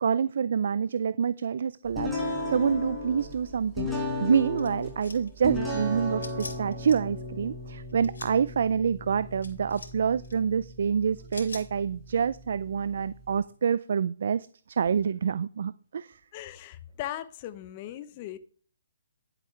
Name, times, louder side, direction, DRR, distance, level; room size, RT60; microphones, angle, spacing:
voice 1, 0.0-3.9 4.2-16.2, right 7 dB, 65° right, 0.4 m, -27 dB
sound 1, 1.9-13.4, left 1 dB, ahead, 5.1 m, -36 dB
Weapon Reload and Checking, 4.6-5.3 6.2-7.0 7.9-8.3 9.4-9.9 10.2-10.3 11.3-11.7, left 3 dB, 85° left, 3.0 m, -42 dB
voice 2, 16.3-18.4, left 12 dB, 35° left, 0.8 m, -38 dB
11.0 x 8.1 x 3.3 m
hypercardioid pair, 150°, 0 cm